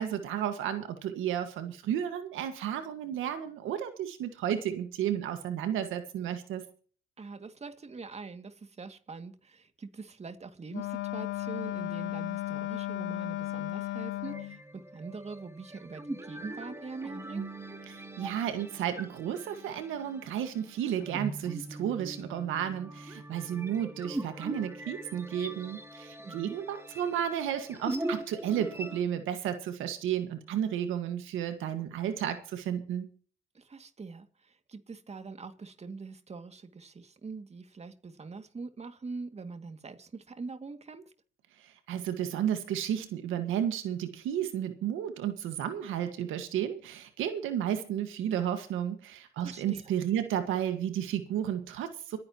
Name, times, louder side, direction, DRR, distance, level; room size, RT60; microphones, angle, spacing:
voice 1, 0.0-6.6 17.9-33.1 41.6-52.2, right 10 dB, 90° right, 8 dB, 1.7 m, -32 dB
voice 2, 7.2-17.5 26.2-26.6 33.5-41.1 49.4-49.9, right 4 dB, 35° right, 7 dB, 2.3 m, -43 dB
Wind instrument woodwind instrument, 10.7-14.6, left 15 dB, 70° left, 0.5 m, -35 dB
sound 1, 14.2-29.0, right 1 dB, 15° right, 2.6 m, -41 dB
26.0 x 10.5 x 3.0 m, 0.42 s
cardioid pair, 90°, 20 cm